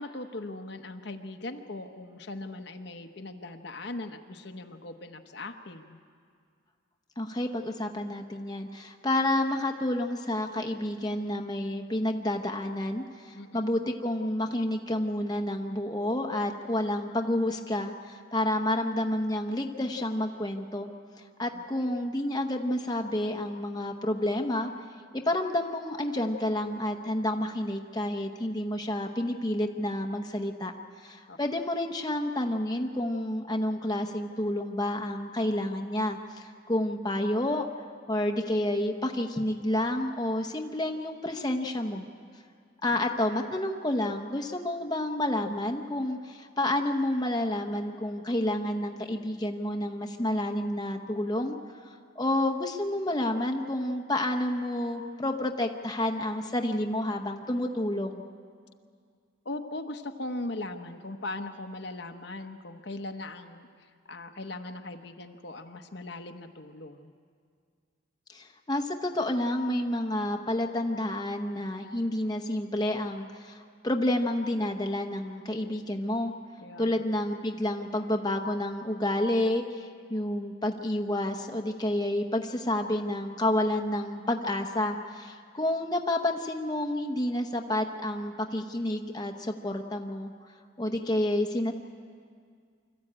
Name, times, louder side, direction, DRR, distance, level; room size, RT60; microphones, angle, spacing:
voice 1, 0.0-6.0 13.3-13.6 21.5-22.0 31.3-31.4 42.9-43.0 59.4-63.7 64.1-67.1 76.6-77.0, left 2 dB, 60° left, 6 dB, 1.0 m, -39 dB
voice 2, 7.2-20.9 21.2-24.7 25.1-30.7 31.0-37.7 38.1-42.1 42.8-58.3 68.3-76.3 76.8-90.3 90.8-91.7, left 1 dB, 20° left, 3 dB, 0.9 m, -29 dB
25.5 x 14.0 x 8.7 m, 2.2 s
head